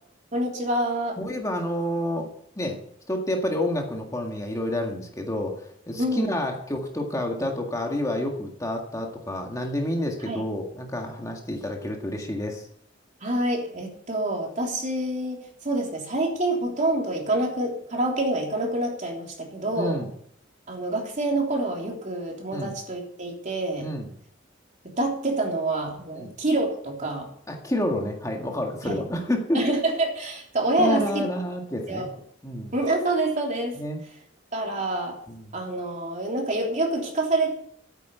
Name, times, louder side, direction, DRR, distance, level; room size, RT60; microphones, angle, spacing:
voice 1, 0.3-1.2 6.0-6.3 10.3-10.4 13.2-20.0 20.7-23.9 25.0-27.3 28.8-29.0 29.5-31.2 31.9-32.0 32.7-33.8 34.5-35.2 35.5-37.5, right 2 dB, 40° right, 0 dB, 3.4 m, -27 dB
voice 2, 1.2-2.3 2.6-2.8 3.1-12.7 19.7-20.1 22.5-22.7 23.8-24.1 26.2-26.3 27.5-29.6 30.8-32.1 32.4-32.7 33.8-34.0 35.3-35.5, left 1 dB, 15° left, 1 dB, 1.8 m, -29 dB
13.0 x 9.3 x 6.8 m, 0.68 s
head